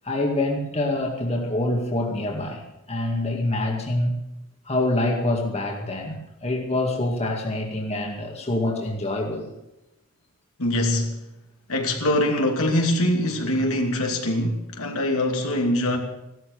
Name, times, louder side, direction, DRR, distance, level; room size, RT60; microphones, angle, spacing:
voice 1, 0.0-2.6 2.9-4.1 4.7-9.5, left 1 dB, 30° left, 1 dB, 2.2 m, -25 dB
voice 2, 10.6-11.1 11.7-16.0, left 1 dB, 65° left, 2 dB, 2.6 m, -23 dB
16.0 x 13.0 x 6.7 m, 0.91 s
head